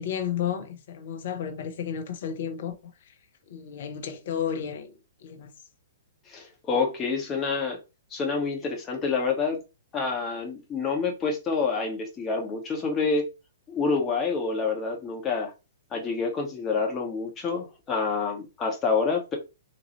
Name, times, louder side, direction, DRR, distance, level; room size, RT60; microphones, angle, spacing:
voice 1, 0.0-3.1 3.5-5.5, left 8 dB, 55° left, 0.8 m, -33 dB
voice 2, 6.3-7.8 8.1-9.6 9.9-13.3 13.7-15.5 15.9-19.4, left 4 dB, 20° left, 1.2 m, -27 dB
4.1 x 2.6 x 3.0 m
figure-of-eight pair, 115°, 0 cm